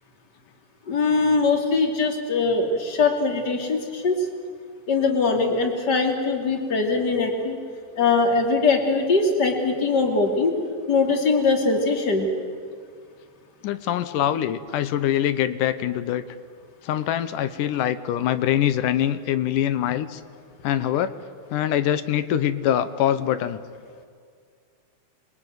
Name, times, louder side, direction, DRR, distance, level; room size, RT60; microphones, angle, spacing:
voice 1, 0.9-4.2 4.9-7.6 8.0-10.5 10.9-12.3, left 4 dB, 30° left, 2 dB, 3.0 m, -21 dB
voice 2, 13.6-16.2 16.8-20.2 20.6-21.1 21.5-23.6, left 11 dB, 70° left, 12 dB, 2.2 m, -24 dB
28.0 x 22.5 x 9.3 m, 2.1 s
omnidirectional pair, 4.3 m